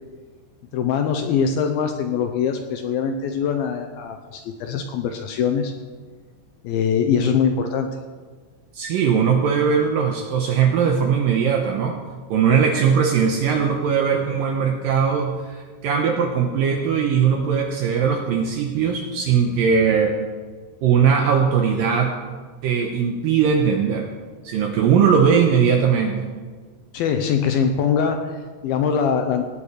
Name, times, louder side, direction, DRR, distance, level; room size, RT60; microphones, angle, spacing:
voice 1, 0.7-5.7 6.6-7.9 26.9-29.4, left 7 dB, 75° left, 6 dB, 2.3 m, -22 dB
voice 2, 8.7-12.0 12.3-20.2 20.8-22.1 22.6-24.1 24.4-26.3, right 7 dB, 75° right, 3 dB, 2.1 m, -19 dB
18.0 x 8.5 x 4.9 m, 1.5 s
omnidirectional pair, 5.0 m